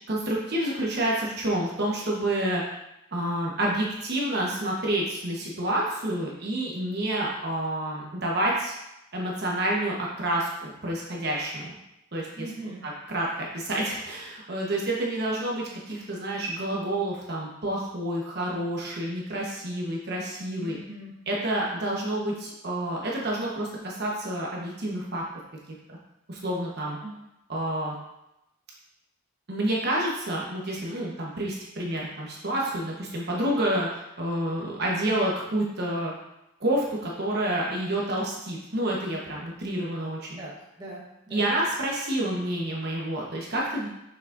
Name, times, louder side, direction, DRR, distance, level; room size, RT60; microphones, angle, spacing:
voice 1, 0.1-2.6 3.1-8.7 9.1-11.7 12.1-12.5 12.8-13.3 13.5-20.8 21.3-25.2 25.9-26.0 26.3-27.0 27.5-27.9 29.5-36.1 36.6-40.4 41.3-43.9, right 1 dB, 50° right, -3 dB, 1.1 m, -29 dB
voice 2, 12.4-12.9 20.6-21.2 27.0-27.2 40.4-41.5, right 2 dB, 20° right, -6 dB, 1.2 m, -41 dB
6.3 x 5.9 x 2.6 m, 0.87 s
head